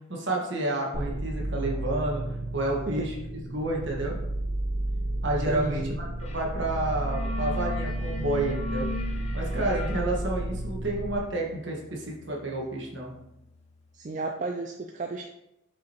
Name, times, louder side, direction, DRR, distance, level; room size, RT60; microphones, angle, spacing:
voice 1, 0.1-2.2 2.5-3.1 3.4-4.2 5.2-5.8 6.2-8.9 9.3-13.1, right 2 dB, 55° right, -1 dB, 1.5 m, -30 dB
sound 1, 0.9-11.2, right 1 dB, 80° right, 0.8 m, -32 dB
voice 2, 5.5-6.0 13.9-15.3, right 3 dB, 35° right, 3 dB, 0.4 m, -33 dB
sound 2, 6.3-6.5 6.8-13.4, left 2 dB, 30° left, 0.6 m, -40 dB
7.0 x 5.0 x 3.0 m, 0.86 s
head